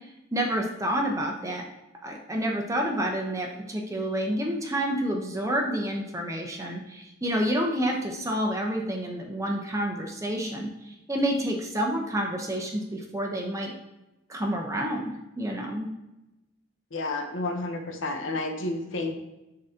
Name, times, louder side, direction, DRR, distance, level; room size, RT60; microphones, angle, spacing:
voice 1, 0.3-1.6 2.0-13.7 14.3-15.0 15.4-15.9, equal, 15° right, 1 dB, 0.9 m, -29 dB
voice 2, 16.9-19.1, left 2 dB, 80° left, 4 dB, 0.9 m, -30 dB
10.0 x 4.0 x 2.8 m, 0.96 s
head